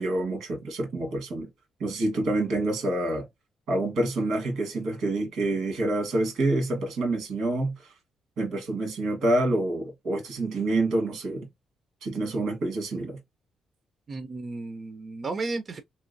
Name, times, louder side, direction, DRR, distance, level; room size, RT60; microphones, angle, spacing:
voice 1, 0.0-1.5 1.8-3.3 3.7-7.9 8.4-11.5 12.0-13.2, right 2 dB, 80° right, 1.4 m, -27 dB
voice 2, 14.1-15.8, right 3 dB, 40° right, 0.4 m, -33 dB
2.9 x 2.9 x 2.6 m
cardioid pair, 90°, 0 cm